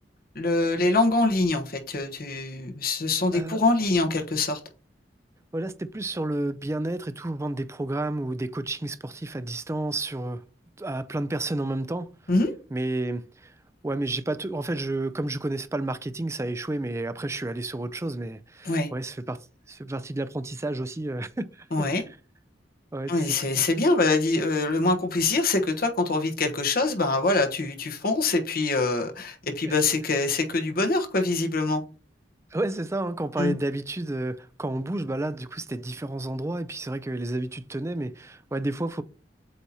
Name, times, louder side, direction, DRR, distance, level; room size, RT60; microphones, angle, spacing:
voice 1, 0.3-4.6 12.3-12.5 18.6-18.9 21.7-22.0 23.1-31.8 33.4-33.5, left 3 dB, 55° left, 1.2 m, -24 dB
voice 2, 5.5-10.4 10.8-12.1 12.7-13.5 13.8-19.4 19.7-21.9 22.9-23.7 29.6-29.7 32.5-39.0, right 2 dB, 15° right, 0.4 m, -31 dB
8.1 x 2.9 x 4.1 m
head